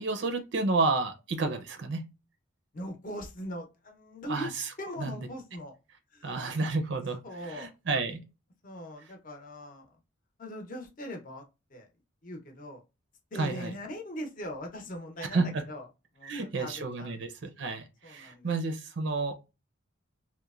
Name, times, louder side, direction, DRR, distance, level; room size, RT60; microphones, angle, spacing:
voice 1, 0.0-2.1 4.3-4.7 5.0-5.1 6.2-8.2 13.4-13.7 15.3-15.6 16.2-19.3, right 3 dB, 60° right, 0.5 m, -31 dB
voice 2, 2.7-4.5 4.8-5.8 6.1-6.5 7.2-7.7 8.6-10.0 10.4-11.4 11.7-11.9 12.2-12.8 13.3-15.9 16.1-17.2 18.0-18.6, left 1 dB, 40° left, 0.7 m, -40 dB
2.9 x 2.1 x 2.3 m
head